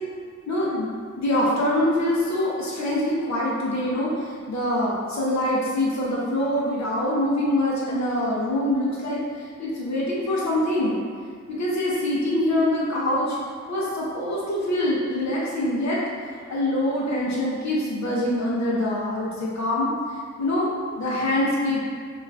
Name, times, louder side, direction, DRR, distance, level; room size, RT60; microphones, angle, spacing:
voice 1, 0.5-0.9 1.2-11.0 11.5-13.4 13.7-16.0 16.5-19.9 20.4-21.8, left 1 dB, 65° left, -6 dB, 0.5 m, -24 dB
2.4 x 2.3 x 3.2 m, 2.1 s
wide cardioid pair, 120°, 30 cm